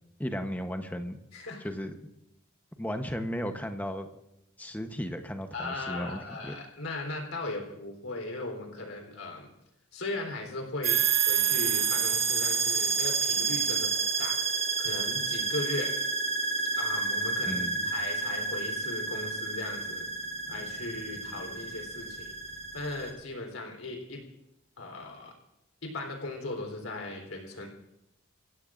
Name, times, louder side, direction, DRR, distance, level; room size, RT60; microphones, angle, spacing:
voice 1, 0.2-1.2 1.6-1.9 2.8-4.1 4.6-6.5 17.5-17.8, equal, 10° left, 6 dB, 0.9 m, -35 dB
voice 2, 5.5-9.5 9.9-11.0 11.3-13.9 14.2-15.9 16.7-20.1 20.5-22.3 22.7-24.2 24.8-25.3 25.8-27.7, left 2 dB, 80° left, 2 dB, 3.7 m, -38 dB
sound 1, 10.8-23.1, right 5 dB, 45° right, 2.6 m, -29 dB
29.0 x 16.0 x 2.5 m, 0.84 s
head